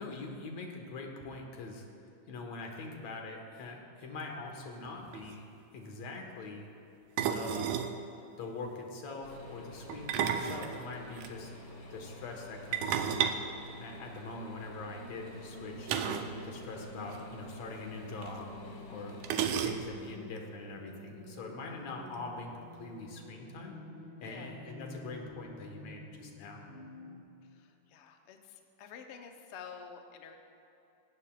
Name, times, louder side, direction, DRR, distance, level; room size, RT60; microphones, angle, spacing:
voice 1, 0.0-1.9 2.3-6.7 7.2-7.9 8.4-11.5 11.9-13.3 13.8-18.5 18.9-23.8 24.2-26.7, left 3 dB, 60° left, 2 dB, 2.5 m, -43 dB
sound 1, 4.9-5.0 5.1-5.4 7.2-8.0 9.9-11.3 12.7-14.4 15.9-16.4 16.6-16.7 17.1-17.2 18.2-18.3 19.2-20.1, right 8 dB, 80° right, 2.1 m, -32 dB
sound 2, 9.2-19.8, left 1 dB, 45° left, 1.2 m, -49 dB
sound 3, 15.0-27.2, left 1 dB, 5° right, 2.3 m, -50 dB
voice 2, 18.7-19.2 24.3-24.5 27.5-30.4, left 6 dB, 75° left, 4 dB, 1.3 m, -50 dB
18.5 x 17.0 x 2.4 m, 2.9 s
omnidirectional pair, 3.7 m